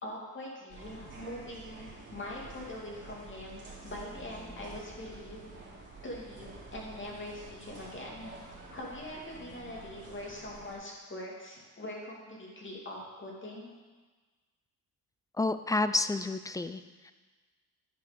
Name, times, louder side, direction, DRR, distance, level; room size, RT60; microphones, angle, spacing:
voice 1, 0.0-5.5 6.0-8.3 8.7-13.7, left 1 dB, 30° left, -3 dB, 2.5 m, -43 dB
sound 1, 0.7-10.8, right 3 dB, 30° right, 2.9 m, -49 dB
voice 2, 15.3-17.1, left 2 dB, 10° left, 12 dB, 0.3 m, -30 dB
10.5 x 4.9 x 5.3 m, 1.3 s
cardioid pair, 85°, 37 cm